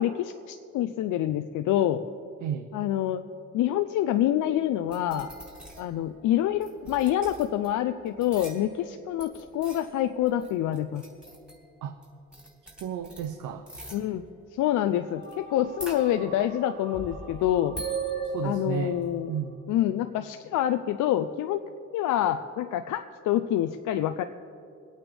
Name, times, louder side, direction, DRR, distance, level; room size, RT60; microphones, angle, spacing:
voice 1, 0.0-2.0 2.7-3.2 3.5-5.3 5.8-11.0 13.9-14.2 14.6-17.8 18.4-19.3 19.7-21.6 21.9-24.2, left 12 dB, 80° left, 8 dB, 0.6 m, -26 dB
sound 1, 4.9-6.0 6.6-7.7 8.1-8.9 9.2-11.7 12.0-12.1 12.3-13.3 13.7-14.0 15.2-15.3 15.6-16.5 16.9-19.0, right 4 dB, 5° right, 3.4 m, -38 dB
voice 2, 12.8-13.7 18.2-19.0 19.3-19.7, right 8 dB, 80° right, 8 dB, 0.8 m, -33 dB
sound 2, 14.6-20.0, right 1 dB, 55° right, 3.8 m, -48 dB
23.5 x 8.9 x 3.4 m, 2.5 s
cardioid pair, 90°, 30 cm